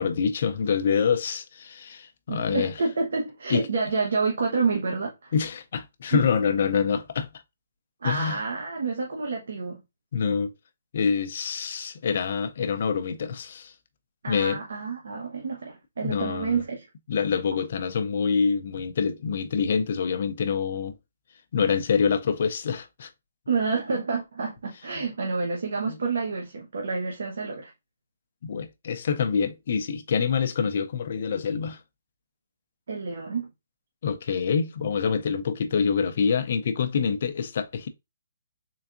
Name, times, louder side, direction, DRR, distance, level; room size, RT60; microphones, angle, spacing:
voice 1, 0.0-2.7 3.5-3.7 5.3-7.3 8.0-8.4 10.1-10.5 10.9-13.7 14.3-14.6 16.0-16.6 17.1-20.9 21.5-23.1 24.9-25.0 25.9-26.0 28.4-31.8 34.0-37.9, left 6 dB, 40° left, 0.4 m, -26 dB
voice 2, 2.3-5.3 6.1-6.2 8.0-9.8 14.2-16.9 23.5-27.7 32.9-33.5, right 4 dB, 70° right, 0.9 m, -28 dB
3.8 x 3.4 x 2.5 m
hypercardioid pair, 180°, 0 cm